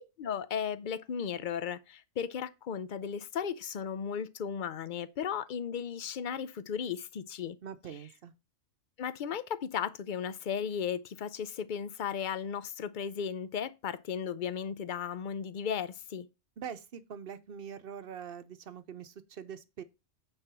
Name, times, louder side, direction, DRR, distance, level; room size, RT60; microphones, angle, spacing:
voice 1, 0.2-7.6 9.0-16.3, left 7 dB, 50° left, 0.6 m, -35 dB
voice 2, 7.6-8.3 16.6-19.8, right 8 dB, 55° right, 0.9 m, -43 dB
8.9 x 4.1 x 6.0 m
omnidirectional pair, 1.3 m